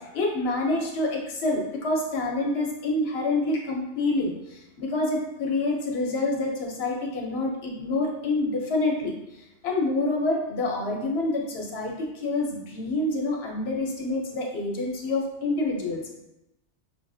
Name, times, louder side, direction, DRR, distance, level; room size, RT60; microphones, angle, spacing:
voice 1, 0.0-16.1, left 2 dB, 65° left, 0 dB, 0.9 m, -27 dB
5.4 x 2.4 x 2.3 m, 0.91 s
omnidirectional pair, 1.2 m